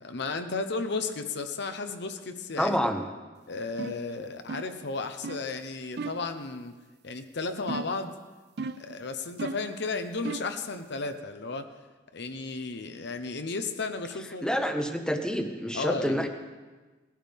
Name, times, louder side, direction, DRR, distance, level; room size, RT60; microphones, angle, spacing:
voice 1, 0.0-2.9 3.5-6.7 7.0-8.2 8.8-11.7 12.1-14.6 15.7-16.3, left 3 dB, 65° left, 8 dB, 0.9 m, -34 dB
voice 2, 2.6-3.1 14.4-16.3, equal, 5° left, 5 dB, 1.0 m, -27 dB
sound 1, 3.8-4.1 4.5-4.8 5.2-5.5 6.0-6.3 7.7-8.1 8.6-8.9 9.4-9.7 10.2-10.6, right 4 dB, 60° right, 0.5 m, -36 dB
18.5 x 12.0 x 3.6 m, 1.3 s
head